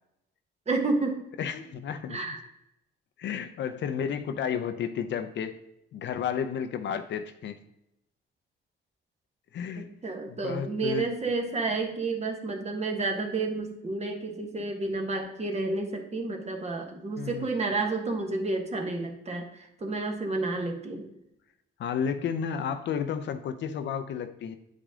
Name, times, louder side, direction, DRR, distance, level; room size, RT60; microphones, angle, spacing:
voice 1, 0.7-1.2 2.1-2.4 9.8-21.0, right 3 dB, 35° right, 3 dB, 1.4 m, -30 dB
voice 2, 1.4-2.2 3.2-5.5 5.9-7.6 9.5-9.9 10.3-11.1 17.2-17.5 21.8-24.6, left 7 dB, 65° left, 9 dB, 0.6 m, -32 dB
8.5 x 4.9 x 3.7 m, 0.81 s
cardioid pair, 90°, 20 cm